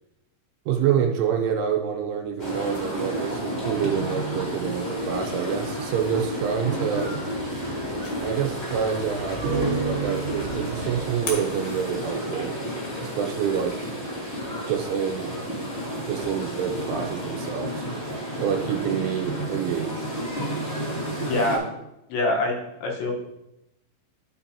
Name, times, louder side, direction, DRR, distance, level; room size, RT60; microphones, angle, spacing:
voice 1, 0.7-7.2 8.2-12.5 13.0-13.7 14.7-15.3 16.1-17.9 18.4-20.0, right 8 dB, 85° right, 3 dB, 3.2 m, -27 dB
sound 1, 2.4-21.6, equal, 30° left, 1.2 m, -31 dB
sound 2, 5.9-12.5, left 3 dB, 60° left, 3.0 m, -43 dB
sound 3, 9.4-12.8, right 4 dB, 65° right, 1.9 m, -32 dB
voice 2, 21.3-21.6 22.1-23.1, left 2 dB, 75° left, 0 dB, 3.2 m, -24 dB
11.0 x 6.1 x 2.8 m, 0.89 s
omnidirectional pair, 5.6 m